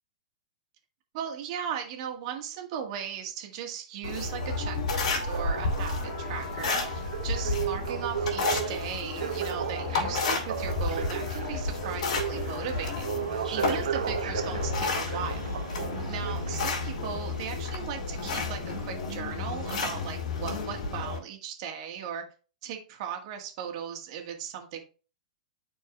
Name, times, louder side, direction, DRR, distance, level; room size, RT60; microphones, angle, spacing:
voice 1, 1.1-13.1 13.5-15.6 16.1-22.2 22.6-24.8, right 8 dB, 55° right, 2 dB, 1.9 m, -37 dB
sound 1, 4.0-21.2, left 3 dB, 65° left, 2.8 m, -32 dB
sound 2, 5.3-16.9 17.6-17.7, right 8 dB, 80° right, 0.7 m, -35 dB
11.0 x 4.5 x 2.5 m, 0.35 s
hypercardioid pair, 120°, 4 cm